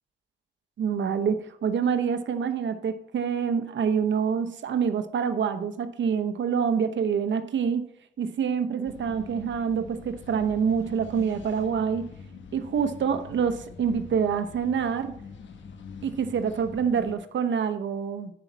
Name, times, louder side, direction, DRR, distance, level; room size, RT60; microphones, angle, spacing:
voice 1, 0.8-7.9 8.2-12.1 12.5-15.1 16.0-18.3, right 7 dB, 80° right, 9 dB, 0.9 m, -26 dB
sound 1, 8.8-17.2, left 5 dB, 85° left, 1.2 m, -44 dB
10.0 x 8.7 x 4.0 m, 0.71 s
wide cardioid pair, 110°, 19 cm